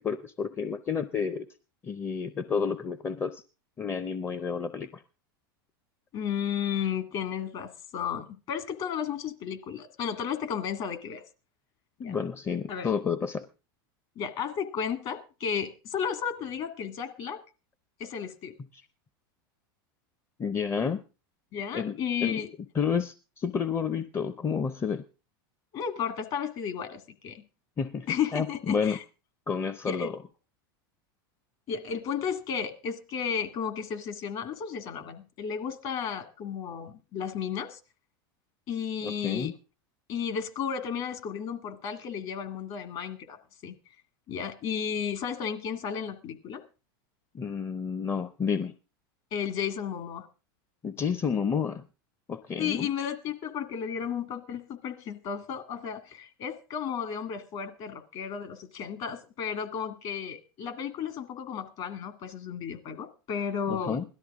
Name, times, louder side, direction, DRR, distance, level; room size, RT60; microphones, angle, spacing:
voice 1, 0.0-1.5 1.8-3.4 3.8-5.0 12.0-13.4 20.4-21.0 21.7-22.4 22.8-25.0 27.8-29.0 29.5-30.1 39.0-39.5 47.3-48.7 50.8-51.9 52.3-52.9 63.7-64.0, left 6 dB, 20° left, 13 dB, 0.6 m, -30 dB
voice 2, 6.1-11.2 12.0-12.2 12.7-12.9 14.2-17.4 18.0-18.6 21.5-22.5 25.7-27.4 28.1-29.0 29.8-30.1 31.7-37.8 38.7-39.5 40.1-43.8 44.3-46.6 49.3-50.3 52.6-64.0, left 7 dB, 50° left, 9 dB, 2.0 m, -33 dB
17.5 x 12.5 x 3.6 m, 0.33 s
hypercardioid pair, 115°, 12 cm